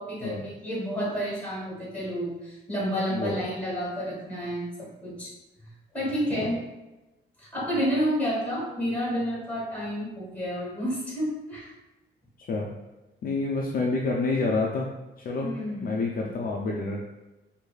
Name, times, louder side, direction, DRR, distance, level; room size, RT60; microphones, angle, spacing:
voice 1, 0.0-5.3 5.6-6.6 7.4-11.7 15.4-16.0, equal, 5° left, -7 dB, 1.4 m, -30 dB
voice 2, 3.1-3.4 6.3-6.4 12.4-12.7 13.2-14.9 15.2-15.5 15.8-17.0, left 3 dB, 45° left, -2 dB, 0.4 m, -28 dB
4.7 x 2.6 x 2.3 m, 1.1 s
cardioid pair, 145°, 21 cm